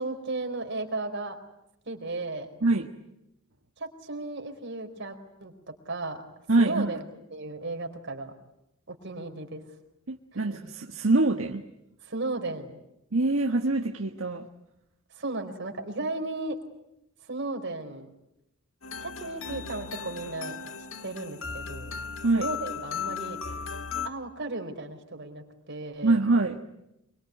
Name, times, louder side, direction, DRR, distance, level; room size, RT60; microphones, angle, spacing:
voice 1, 0.0-1.4 1.9-2.5 3.8-6.2 6.6-7.0 7.3-8.3 8.9-9.6 10.3-10.6 12.0-12.7 15.1-16.6 17.3-18.1 19.0-20.6 21.0-21.9 22.3-23.4 24.0-26.2, right 2 dB, 60° right, 5 dB, 4.4 m, -35 dB
voice 2, 6.5-6.9 10.1-11.6 13.1-14.4 22.2-22.5 26.0-26.6, right 2 dB, 80° right, 3 dB, 1.6 m, -24 dB
sound 1, 18.8-24.1, left 6 dB, 75° left, 1.7 m, -36 dB
25.5 x 23.5 x 9.4 m, 0.86 s
head